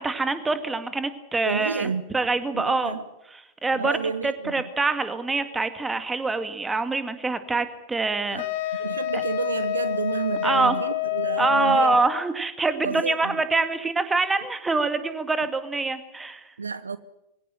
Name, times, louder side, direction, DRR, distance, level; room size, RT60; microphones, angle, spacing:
voice 1, 0.0-3.0 3.3-8.4 8.7-8.8 9.1-9.2 10.4-10.8 11.4-16.5, right 3 dB, 10° right, 2.1 m, -25 dB
voice 2, 1.4-2.0 2.5-3.0 3.7-4.5 8.3-8.5 8.8-12.0 12.8-13.4 16.6-17.0, right 5 dB, 75° right, 0.8 m, -30 dB
Wind instrument woodwind instrument, 8.4-12.2, left 15 dB, 50° left, 1.2 m, -28 dB
23.0 x 17.0 x 9.1 m
figure-of-eight pair, 90°, 0 cm